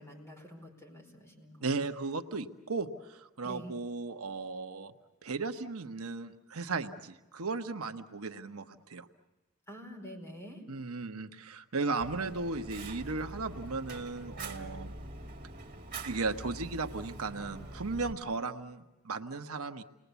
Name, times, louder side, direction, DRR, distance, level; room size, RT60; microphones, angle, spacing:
voice 1, 0.0-1.9 3.4-3.7 9.7-10.6, equal, 15° left, 0 dB, 4.8 m, -47 dB
voice 2, 1.6-4.9 5.2-9.1 10.7-14.9 16.0-19.8, right 3 dB, 75° right, 7 dB, 1.1 m, -36 dB
Fire, 12.0-18.1, right 2 dB, 40° right, 2.5 m, -44 dB
29.0 x 20.5 x 8.2 m, 1.0 s
head